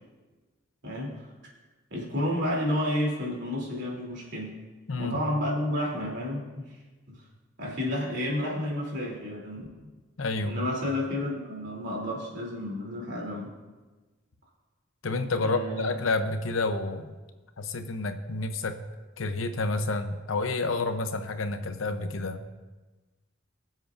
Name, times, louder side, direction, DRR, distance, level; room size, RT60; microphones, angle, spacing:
voice 1, 0.8-1.3 1.9-4.5 5.0-6.7 7.1-7.2 7.6-9.7 10.4-13.5 15.4-15.9, left 1 dB, 60° right, -3 dB, 3.1 m, -31 dB
voice 2, 10.2-10.6 15.0-17.2 17.6-18.8 19.2-22.4, left 3 dB, 85° left, 9 dB, 0.8 m, -29 dB
22.5 x 7.6 x 2.6 m, 1.2 s
head